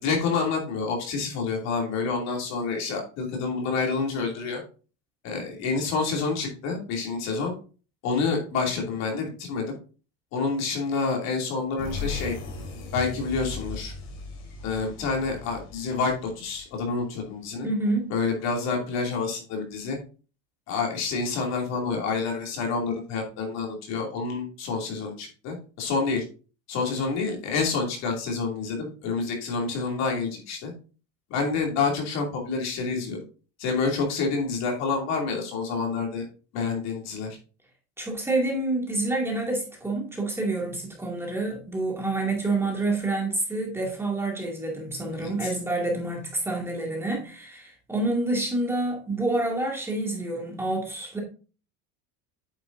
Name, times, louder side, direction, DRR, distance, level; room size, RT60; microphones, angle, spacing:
voice 1, 0.0-4.6 5.2-7.5 8.0-9.7 10.3-12.4 12.9-13.9 14.6-17.7 18.1-20.0 20.7-26.2 26.7-30.7 31.3-33.2 33.6-36.2 36.5-37.4 45.2-45.5, left 4 dB, 50° left, 2.7 m, -28 dB
sound 1, 11.8-17.3, left 4 dB, 85° left, 3.8 m, -37 dB
voice 2, 17.6-18.1 38.0-51.2, right 2 dB, 5° right, 2.3 m, -28 dB
8.8 x 6.9 x 2.6 m
cardioid pair, 155°, 34 cm